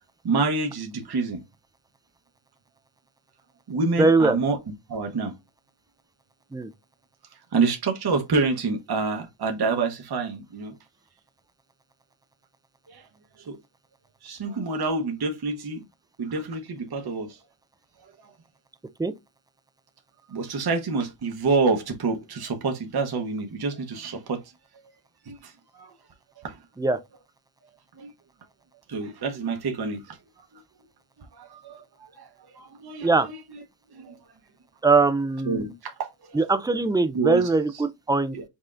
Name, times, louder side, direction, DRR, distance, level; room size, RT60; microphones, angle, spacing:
voice 1, 0.2-1.4 3.7-4.6 4.9-5.3 7.5-10.7 12.9-13.0 13.5-13.6 14.2-15.8 16.2-17.4 20.3-24.4 25.3-25.5 25.8-25.9 26.4-26.6 28.0-28.1 28.9-30.2 31.4-31.8 32.1-32.3 32.6-33.3 33.9-34.1 35.5-36.4 37.1-37.4 38.3-38.4, right 4 dB, 50° right, 1.0 m, -27 dB
voice 2, 4.0-4.4 6.5-6.7 19.0-19.1 26.8-27.0 33.0-33.3 34.8-35.7 36.3-38.4, right 3 dB, 10° right, 0.4 m, -21 dB
5.6 x 3.6 x 2.5 m
wide cardioid pair, 135°, 50 cm